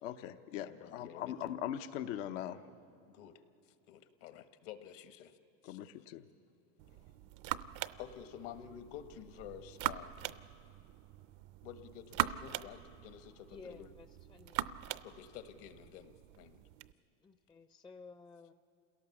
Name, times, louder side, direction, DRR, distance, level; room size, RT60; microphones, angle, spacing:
voice 1, 0.0-2.6 5.6-6.2, left 11 dB, 85° left, 10 dB, 0.9 m, -40 dB
voice 2, 0.6-1.6 3.1-3.4 3.9-5.4 5.6-5.8 8.0-10.4 11.6-13.9 15.0-16.6, left 10 dB, 65° left, 11 dB, 1.3 m, -50 dB
sound 1, 6.8-16.9, right 13 dB, 60° right, 0.6 m, -42 dB
voice 3, 13.5-14.8 17.2-18.5, left 4 dB, 15° left, 10 dB, 0.5 m, -54 dB
27.5 x 17.5 x 7.1 m, 2.6 s
supercardioid pair, 110°, 37 cm